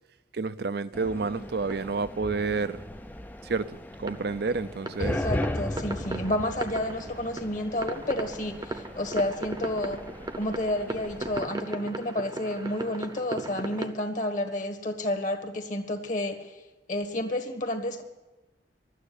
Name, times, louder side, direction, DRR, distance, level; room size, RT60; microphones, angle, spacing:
voice 1, 0.3-2.8 3.4-5.2, right 4 dB, 60° right, 0.5 m, -30 dB
sound 1, 0.9-11.5, left 1 dB, 10° left, 0.5 m, -37 dB
sound 2, 1.3-2.9 3.9-13.9, right 2 dB, 20° right, 0.8 m, -38 dB
voice 2, 5.0-10.0 10.4-16.6 16.9-18.0, left 1 dB, 45° left, 1.5 m, -30 dB
12.5 x 9.3 x 9.6 m
head